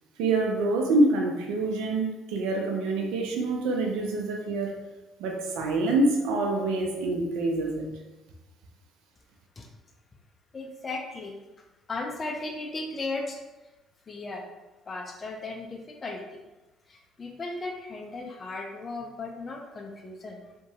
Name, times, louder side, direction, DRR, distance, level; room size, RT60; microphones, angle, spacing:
voice 1, 0.2-4.7 5.2-7.8, right 2 dB, 85° right, 1 dB, 0.4 m, -26 dB
voice 2, 10.5-11.4 11.9-13.4 14.1-14.5 14.9-16.4 16.9-20.4, left 3 dB, 35° left, 1 dB, 0.4 m, -36 dB
2.8 x 2.2 x 2.7 m, 1.1 s
supercardioid pair, 75°, 0 cm